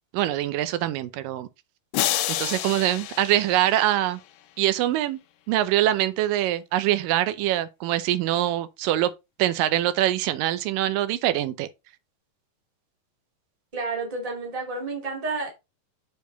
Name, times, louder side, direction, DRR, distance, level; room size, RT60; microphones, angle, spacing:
voice 1, 0.1-1.5 2.4-4.2 4.6-5.2 5.5-9.1 9.4-11.7, right 13 dB, 85° right, 2.4 m, -24 dB
sound 1, 1.9-4.3, left 13 dB, 80° left, 1.6 m, -29 dB
voice 2, 13.7-15.5, right 3 dB, 15° right, 1.6 m, -30 dB
7.1 x 4.7 x 3.9 m
omnidirectional pair, 3.9 m